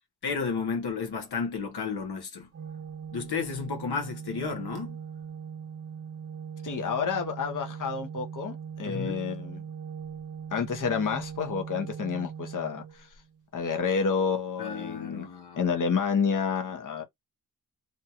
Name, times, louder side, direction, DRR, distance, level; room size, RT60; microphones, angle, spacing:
voice 1, 0.2-2.5 3.1-5.0 8.8-9.2 14.6-15.7, left 5 dB, 80° left, 0.8 m, -33 dB
Organ, 2.5-13.4, right 7 dB, 40° right, 0.5 m, -40 dB
voice 2, 6.6-9.6 10.5-13.1 13.5-15.3 15.6-17.0, left 6 dB, 55° left, 0.8 m, -29 dB
2.6 x 2.3 x 2.8 m
wide cardioid pair, 75°, 38 cm